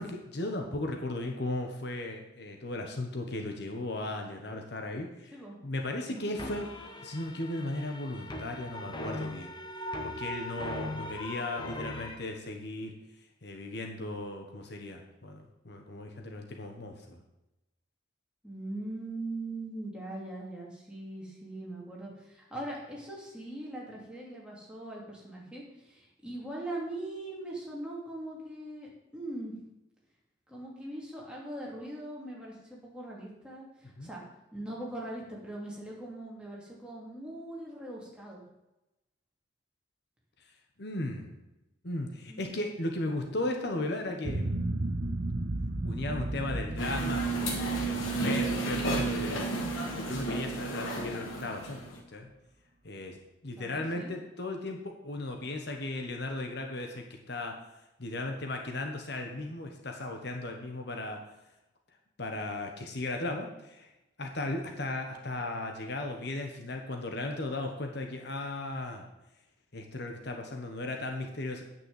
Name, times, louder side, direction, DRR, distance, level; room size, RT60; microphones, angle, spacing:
voice 1, 0.0-5.4 5.6-6.7 7.0-9.5 10.0-12.9 13.4-17.2 34.0-34.1 40.8-41.3 41.8-44.5 45.8-47.3 47.8-49.6 49.9-52.3 52.8-53.2 53.4-57.6 58.0-61.2 62.2-63.9 64.2-69.1 69.7-71.6, left 2 dB, 55° left, 3 dB, 1.3 m, -36 dB
sound 1, 6.4-12.1, left 1 dB, 25° left, 1.1 m, -39 dB
voice 2, 18.4-29.5 30.5-34.2 34.5-38.4 42.3-42.5 53.6-54.1, right 1 dB, 5° right, -4 dB, 2.8 m, -41 dB
sound 2, 44.2-51.4, right 2 dB, 45° right, 0.9 m, -35 dB
sound 3, 46.8-52.0, right 2 dB, 85° left, 2.3 m, -32 dB
9.3 x 6.1 x 7.9 m, 0.94 s
head